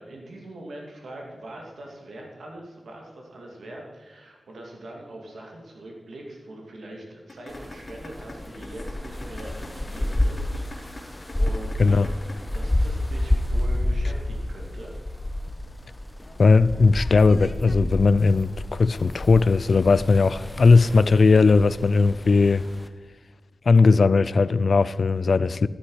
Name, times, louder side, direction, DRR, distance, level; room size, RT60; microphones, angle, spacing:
voice 1, 0.0-12.1 12.5-14.9, right 1 dB, 90° right, 2.3 m, -42 dB
sound 1, 7.3-13.3, left 3 dB, 40° left, 2.8 m, -42 dB
sound 2, 7.5-22.9, left 1 dB, 20° left, 0.9 m, -30 dB
voice 2, 16.4-22.7 23.7-25.7, left 4 dB, 65° left, 0.4 m, -18 dB
13.0 x 11.5 x 4.9 m
wide cardioid pair, 85°, 0 cm